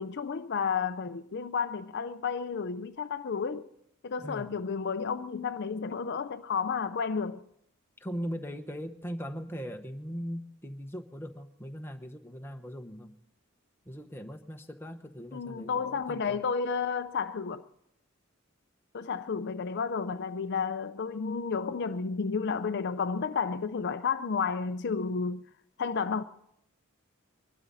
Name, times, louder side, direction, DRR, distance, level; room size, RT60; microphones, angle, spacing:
voice 1, 0.0-3.7 4.0-7.4 15.3-17.6 18.9-25.4 25.8-26.2, left 5 dB, 55° left, 0.5 m, -31 dB
voice 2, 8.0-13.2 13.9-16.4, equal, 10° left, 1.0 m, -39 dB
23.5 x 12.0 x 4.1 m
head